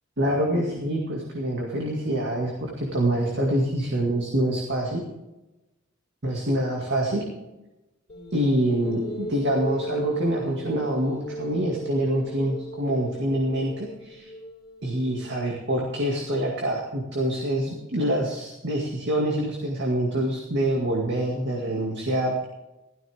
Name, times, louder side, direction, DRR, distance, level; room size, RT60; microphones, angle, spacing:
voice 1, 0.2-5.0 6.2-7.2 8.3-14.3 14.8-22.3, right 1 dB, 60° right, -1 dB, 2.2 m, -26 dB
sound 1, 8.1-15.5, right 1 dB, 30° left, 3.8 m, -36 dB
16.0 x 13.5 x 3.5 m, 0.99 s
head